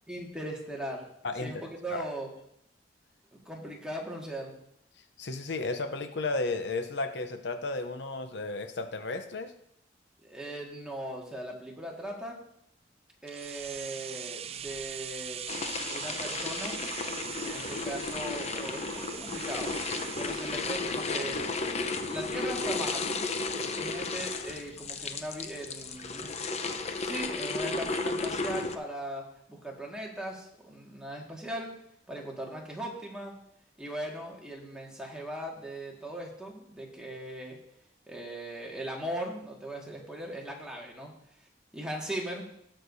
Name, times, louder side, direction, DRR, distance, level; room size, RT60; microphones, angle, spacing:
voice 1, 0.1-1.1 1.4-2.3 3.3-4.5 10.2-12.4 13.2-15.4 15.9-16.8 17.4-19.7 20.2-21.4 22.1-23.2 23.5-26.4 27.0-31.7 32.1-33.3 33.8-37.6 38.1-41.1 41.7-42.4, right 1 dB, 5° right, -2 dB, 1.8 m, -39 dB
voice 2, 1.2-1.6 1.9-2.1 5.2-9.5, left 3 dB, 70° left, 8 dB, 0.7 m, -33 dB
sound 1, 13.3-23.1 23.4-23.5, right 9 dB, 35° right, 0.4 m, -42 dB
sound 2, 15.5-28.8, left 3 dB, 35° left, 0.7 m, -34 dB
19.0 x 6.6 x 2.7 m, 0.72 s
head